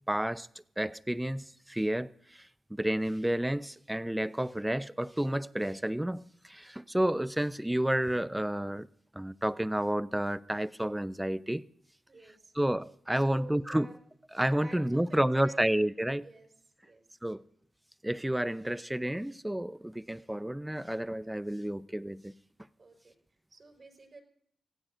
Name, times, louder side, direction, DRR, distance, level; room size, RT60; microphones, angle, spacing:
voice 1, 0.1-0.5 0.8-8.9 9.1-11.6 12.5-13.9 14.3-16.3 17.2-17.4 18.0-22.3, right 1 dB, 10° right, 0.7 m, -30 dB
voice 2, 12.1-12.5 13.1-14.0 14.6-15.8 16.2-16.5 16.8-17.1 22.8-24.2, right 3 dB, 45° right, 4.9 m, -51 dB
25.5 x 16.0 x 2.6 m
supercardioid pair, 45°, 0 cm